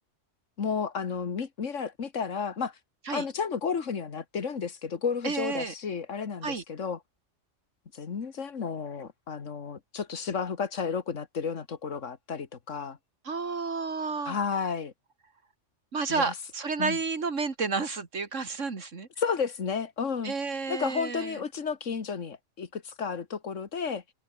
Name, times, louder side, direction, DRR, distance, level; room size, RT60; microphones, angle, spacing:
voice 1, 0.6-2.7 3.1-7.0 7.9-13.0 14.3-14.9 16.1-16.3 16.8-17.0 19.2-20.3 20.7-24.0, left 6 dB, 85° left, 2.0 m, -32 dB
voice 2, 5.2-5.7 6.4-6.6 13.2-14.4 15.9-19.1 20.2-21.4, right 4 dB, 80° right, 2.6 m, -31 dB
omnidirectional pair, 1.3 m